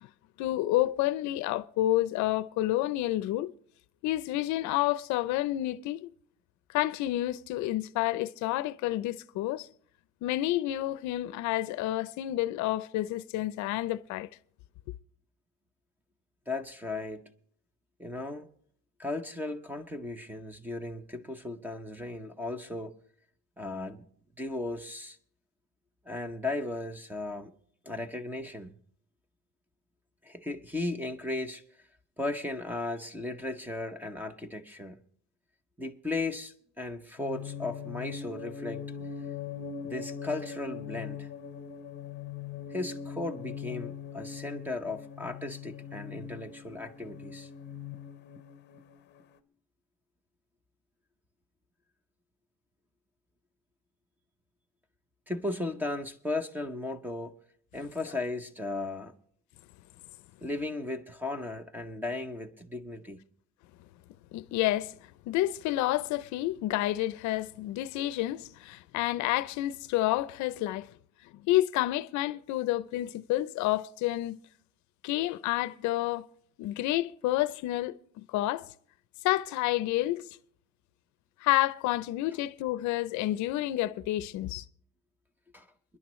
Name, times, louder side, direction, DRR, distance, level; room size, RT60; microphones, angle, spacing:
voice 1, 0.4-3.5 4.0-6.1 6.7-9.7 10.2-14.3 64.3-65.0 65.3-70.9 71.2-74.4 75.0-76.3 76.6-78.7 79.2-80.3 81.4-84.7, left 15 dB, 65° left, 0.6 m, -29 dB
voice 2, 16.5-17.2 18.0-18.5 19.0-22.9 23.6-24.0 24.4-25.2 26.1-27.5 27.8-28.7 30.2-31.6 32.2-35.0 35.8-38.8 39.8-41.3 42.7-47.5 55.3-57.3 57.7-59.1 60.4-63.2 85.5-85.7, left 2 dB, 5° right, 0.7 m, -36 dB
sound 1, 37.2-49.2, left 7 dB, 35° left, 0.8 m, -41 dB
29.0 x 10.5 x 3.1 m
cardioid pair, 170°, 32 cm